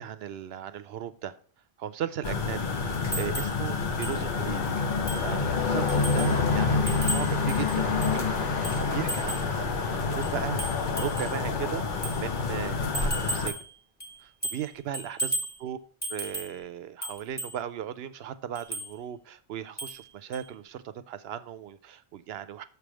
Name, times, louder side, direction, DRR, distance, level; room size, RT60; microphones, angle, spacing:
voice 1, 0.0-1.4 1.8-4.6 5.2-13.6 14.2-15.8 16.1-22.6, right 10 dB, 70° right, 0.8 m, -37 dB
sound 1, 2.2-13.5, left 4 dB, 50° left, 0.8 m, -27 dB
sound 2, 3.1-3.6 4.0-4.2 4.5-4.6 5.1-5.3 5.9-6.4 6.9-8.2 8.6-9.5 10.2-11.4 12.0-12.2 12.9-13.7 14.0-14.7 14.9-15.6 16.0-16.6 17.0-17.6 18.5-18.9 19.8-20.0 20.3-20.4, right 1 dB, 10° left, 1.3 m, -35 dB
sound 3, 3.9-13.0, equal, 10° right, 0.4 m, -45 dB
6.5 x 3.4 x 6.1 m
omnidirectional pair, 1.1 m